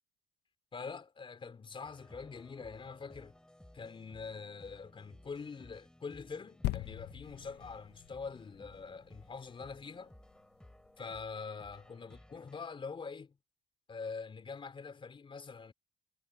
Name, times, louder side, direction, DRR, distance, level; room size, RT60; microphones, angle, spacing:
voice 1, 0.7-3.4 3.7-10.1 11.0-13.4 13.9-15.7, left 5 dB, 30° left, 4.5 m, -44 dB
sound 1, 1.8-12.6, left 1 dB, 5° left, 7.8 m, -59 dB
sound 2, 6.6-10.2 10.9-11.0, left 17 dB, 75° left, 0.7 m, -41 dB
cardioid pair, 105°, 17 cm